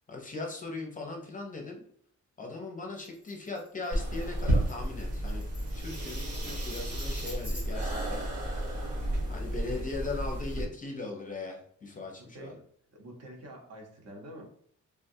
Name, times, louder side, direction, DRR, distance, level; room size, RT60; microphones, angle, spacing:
voice 1, 0.1-1.8 2.4-5.4 5.7-8.3 9.3-12.5, left 3 dB, 25° left, 0 dB, 0.6 m, -39 dB
Tambourine, 3.0-8.0, left 1 dB, 5° right, 0.8 m, -49 dB
sound 1, 3.9-10.6, right 1 dB, 75° right, 1.3 m, -32 dB
voice 2, 9.4-10.1 12.2-12.6 12.9-14.4, right 1 dB, 55° right, 0 dB, 1.0 m, -47 dB
3.6 x 2.3 x 2.7 m, 0.65 s
wide cardioid pair, 165°, 30 cm